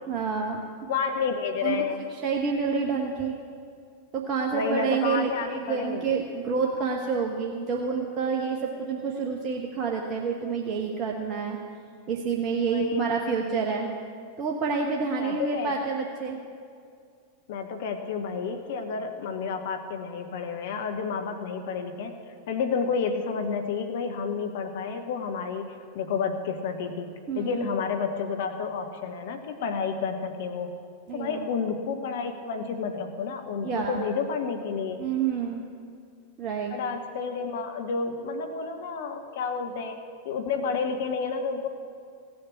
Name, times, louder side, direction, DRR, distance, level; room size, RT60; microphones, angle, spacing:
voice 1, 0.1-0.6 1.6-1.8 2.2-3.3 4.1-11.6 12.1-13.9 14.4-16.4 27.3-27.6 31.1-31.5 33.6-34.1 35.0-35.6 36.4-36.7, right 5 dB, 35° right, 0 dB, 1.2 m, -28 dB
voice 2, 0.9-2.0 4.5-6.1 12.7-13.2 15.2-15.7 17.5-22.2 22.5-30.7 31.1-35.0 36.7-40.0 40.2-41.7, left 5 dB, 55° left, 6 dB, 1.0 m, -30 dB
17.0 x 7.1 x 8.7 m, 2.3 s
figure-of-eight pair, 90°, 0 cm